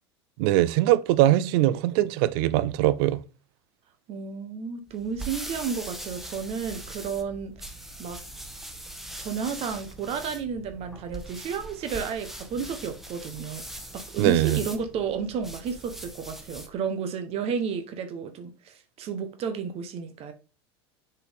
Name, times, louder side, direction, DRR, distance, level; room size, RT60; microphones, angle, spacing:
voice 1, 0.4-3.2 14.2-14.6, right 15 dB, 60° right, 0.5 m, -21 dB
voice 2, 4.1-7.5 8.0-8.2 9.2-13.6 13.9-20.3, right 6 dB, 45° right, 1.1 m, -32 dB
sound 1, 4.9-16.8, right 1 dB, ahead, 1.2 m, -41 dB
6.8 x 4.6 x 3.6 m
hypercardioid pair, 90°, 14 cm